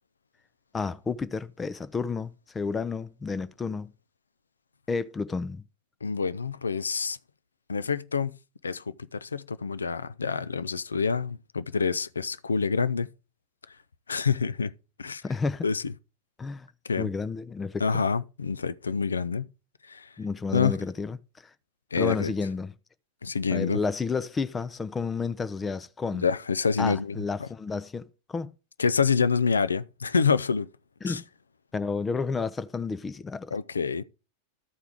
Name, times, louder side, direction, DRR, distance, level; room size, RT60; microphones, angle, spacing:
voice 1, 0.7-3.9 4.9-5.6 15.2-15.7 16.4-16.7 17.0-18.0 20.2-21.2 22.0-22.7 23.5-26.2 26.8-28.5 31.0-31.2 31.7-33.5, left 4 dB, 15° left, 0.5 m, -31 dB
voice 2, 6.0-7.2 7.7-8.4 8.6-13.1 14.1-14.7 15.0-15.2 15.6-15.9 16.8-17.1 17.8-19.5 19.9-20.1 20.5-20.8 21.9-22.3 23.2-23.8 26.2-27.5 28.8-30.7 31.1-31.2 33.5-34.0, left 5 dB, 75° left, 0.4 m, -27 dB
13.5 x 4.6 x 3.6 m
figure-of-eight pair, 90°, 0 cm